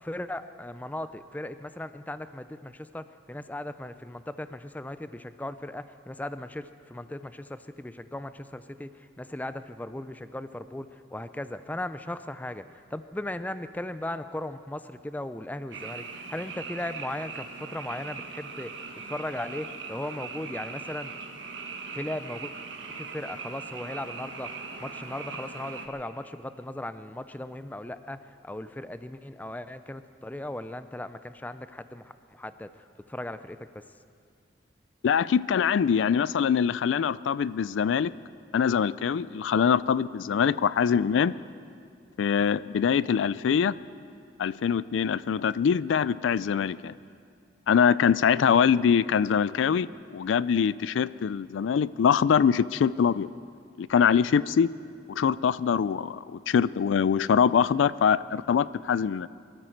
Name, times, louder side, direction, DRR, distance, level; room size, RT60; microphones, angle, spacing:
voice 1, 0.0-8.9 9.2-12.6 12.9-18.7 19.0-21.1 21.9-22.5 23.0-24.5 24.8-32.7 33.1-33.8, left 1 dB, 10° left, 12 dB, 0.4 m, -37 dB
Frog, 15.7-25.9, right 4 dB, 80° right, 1.4 m, -40 dB
voice 2, 35.0-38.1 38.5-41.3 42.2-43.8 44.4-46.9 47.7-49.9 50.1-53.3 53.8-54.7 55.1-59.3, left 7 dB, 90° left, 18 dB, 0.3 m, -23 dB
23.0 x 13.5 x 4.5 m, 2.3 s
head